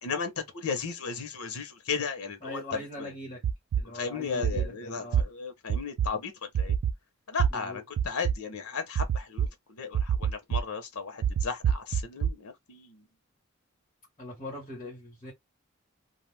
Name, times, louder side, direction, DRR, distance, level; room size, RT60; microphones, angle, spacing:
voice 1, 0.0-3.1 3.8-6.8 7.3-13.0, left 5 dB, 85° left, 0.8 m, -35 dB
voice 2, 2.4-3.4 3.8-5.3 7.5-7.8 14.2-15.3, left 1 dB, 25° left, 1.2 m, -41 dB
sound 1, 3.4-3.8 4.4-4.7 5.1-5.2 5.7-6.1 6.5-6.9 7.4-7.5 8.0-8.3 9.0-9.5 9.9-10.6 11.2-12.3, right 8 dB, 85° right, 0.3 m, -25 dB
2.4 x 2.4 x 3.3 m
head